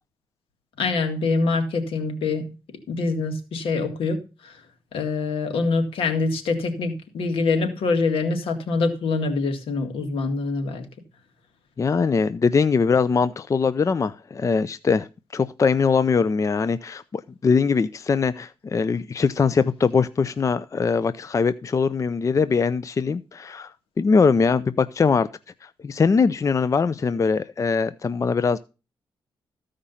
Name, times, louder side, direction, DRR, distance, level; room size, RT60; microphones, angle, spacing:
voice 1, 0.8-2.5 2.9-4.5 4.9-10.9, left 3 dB, 80° left, 2.0 m, -25 dB
voice 2, 11.8-15.1 15.3-23.7 24.0-25.3 25.8-28.6, left 5 dB, 35° left, 0.5 m, -21 dB
14.5 x 5.1 x 5.6 m
cardioid pair, 80°, 9 cm